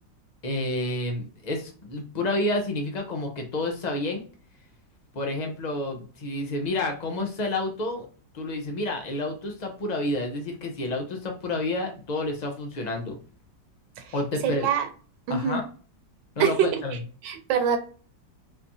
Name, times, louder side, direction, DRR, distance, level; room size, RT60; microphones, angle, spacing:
voice 1, 0.4-4.2 5.1-8.1 8.3-13.2 14.1-14.7 15.3-15.6 16.4-17.0, left 2 dB, 70° left, 3 dB, 0.4 m, -29 dB
voice 2, 14.4-14.9 15.3-15.6 16.4-16.8 17.2-17.8, right 7 dB, 90° right, 8 dB, 1.4 m, -24 dB
4.1 x 2.9 x 2.6 m, 0.39 s
omnidirectional pair, 1.9 m